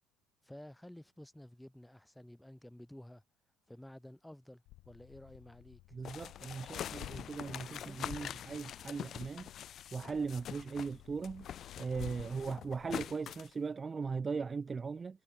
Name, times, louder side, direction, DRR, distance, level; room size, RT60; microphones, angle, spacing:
voice 1, 0.4-3.2 3.7-6.0 7.7-8.4, left 1 dB, 5° left, 6.3 m, -53 dB
sound 1, 4.7-13.2, left 18 dB, 65° left, 1.1 m, -54 dB
voice 2, 5.9-9.5 9.9-11.5 11.8-15.2, right 5 dB, 30° right, 0.5 m, -39 dB
sound 2, 6.0-11.0 11.2-13.5, left 10 dB, 50° left, 1.5 m, -44 dB
hypercardioid pair, 70°, 0 cm